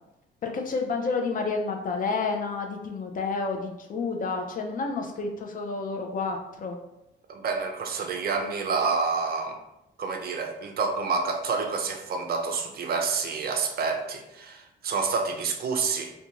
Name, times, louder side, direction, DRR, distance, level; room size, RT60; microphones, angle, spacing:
voice 1, 0.4-6.8, left 4 dB, 45° left, 3 dB, 0.5 m, -30 dB
voice 2, 7.3-9.6 10.0-16.1, right 4 dB, 50° right, 4 dB, 0.4 m, -28 dB
2.5 x 2.2 x 2.9 m, 0.90 s
cardioid pair, 90°, 20 cm